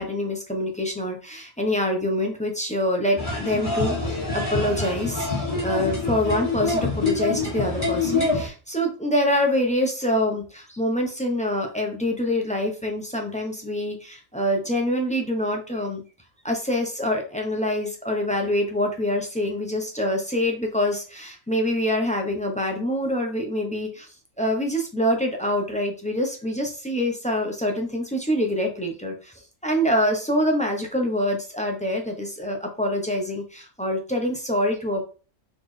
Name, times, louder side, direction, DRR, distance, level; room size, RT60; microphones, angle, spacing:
voice 1, 0.0-16.0 16.4-24.1 24.4-29.3 29.6-35.0, left 1 dB, 5° left, 2 dB, 0.6 m, -25 dB
sound 1, 3.2-8.5, left 3 dB, 25° left, 2.3 m, -26 dB
4.2 x 3.8 x 3.2 m, 0.36 s
omnidirectional pair, 1.4 m